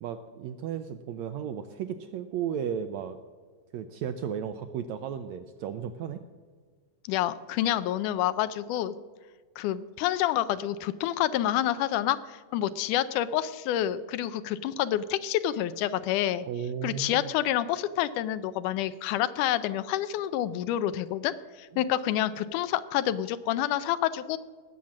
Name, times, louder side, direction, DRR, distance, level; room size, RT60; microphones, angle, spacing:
voice 1, 0.0-3.2 3.7-6.2 16.4-17.3, right 8 dB, 80° right, 9 dB, 1.6 m, -34 dB
voice 2, 7.1-8.9 9.6-16.5 16.8-24.4, left 12 dB, 80° left, 14 dB, 2.0 m, -28 dB
18.0 x 7.3 x 6.3 m, 1.5 s
omnidirectional pair, 3.7 m